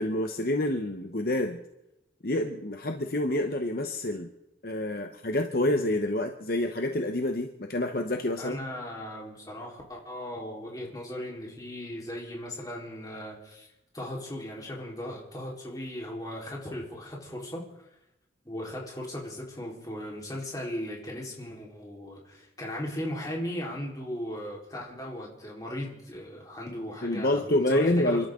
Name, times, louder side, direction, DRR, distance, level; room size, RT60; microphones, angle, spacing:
voice 1, 0.0-1.6 2.2-4.3 4.6-8.6 27.0-28.3, left 1 dB, 55° left, 5 dB, 1.0 m, -27 dB
voice 2, 8.4-13.7 13.9-17.6 18.4-28.3, left 1 dB, 20° left, -3 dB, 4.1 m, -37 dB
29.5 x 12.5 x 3.8 m, 0.89 s
head